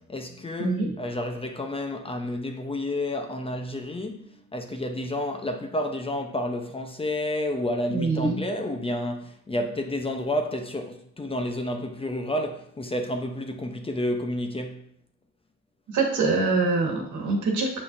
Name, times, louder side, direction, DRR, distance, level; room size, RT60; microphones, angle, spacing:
voice 1, 0.0-14.9, left 1 dB, 20° left, 0.7 m, -30 dB
voice 2, 0.6-0.9 7.9-8.4 15.9-17.8, right 3 dB, 75° right, 1.6 m, -24 dB
6.5 x 5.5 x 2.6 m
cardioid pair, 90°, 30 cm